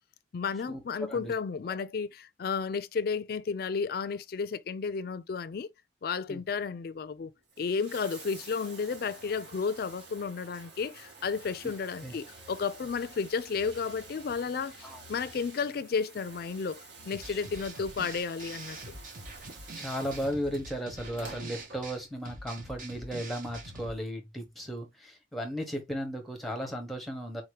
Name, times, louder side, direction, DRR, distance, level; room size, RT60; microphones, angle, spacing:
voice 1, 0.3-5.7 6.0-7.3 7.6-18.9, left 5 dB, 55° left, 0.4 m, -33 dB
Bathtub (filling or washing), 7.4-22.3 23.5-23.6, right 3 dB, 70° right, 1.3 m, -50 dB
sound 1, 17.1-24.0, right 2 dB, 45° right, 0.8 m, -45 dB
voice 2, 19.8-27.4, equal, ahead, 1.0 m, -35 dB
4.1 x 2.9 x 3.2 m
head